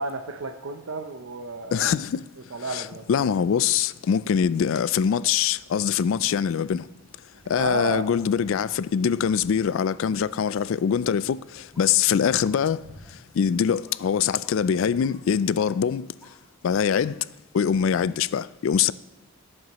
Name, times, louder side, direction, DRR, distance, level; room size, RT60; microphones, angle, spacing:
voice 1, 0.0-1.9 2.5-3.0 7.5-8.1, right 3 dB, 70° right, 0.7 m, -32 dB
voice 2, 1.7-2.2 2.7-6.9 7.5-12.8 13.4-16.1 16.6-17.2 17.5-18.9, left 7 dB, 65° left, 0.3 m, -23 dB
sound 1, 5.4-15.4, equal, 40° right, 4.0 m, -56 dB
sound 2, 8.1-8.2 8.6-8.8 9.2-9.4 9.8-10.0 10.6-10.7 11.7-11.9 12.4-12.6 13.0-13.1 13.8-14.0 14.4-14.6 15.0-15.2 15.6-15.8 16.2-16.4 16.9-17.1 17.6-17.7, equal, ahead, 1.7 m, -56 dB
17.0 x 7.8 x 3.0 m
head